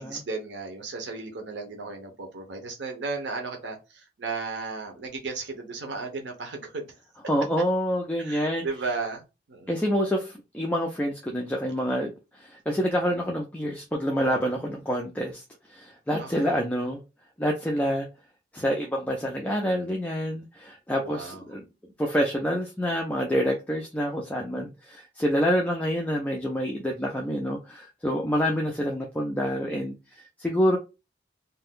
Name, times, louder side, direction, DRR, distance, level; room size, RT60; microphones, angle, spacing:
voice 1, 0.0-6.9 8.2-9.2 9.5-9.7 16.2-16.6 21.0-21.4, right 4 dB, 80° right, 0.6 m, -35 dB
voice 2, 7.3-8.6 9.7-15.4 15.7-17.0 17.4-18.1 18.5-21.6 22.0-30.8, equal, 10° left, 0.4 m, -27 dB
2.5 x 2.2 x 3.5 m
head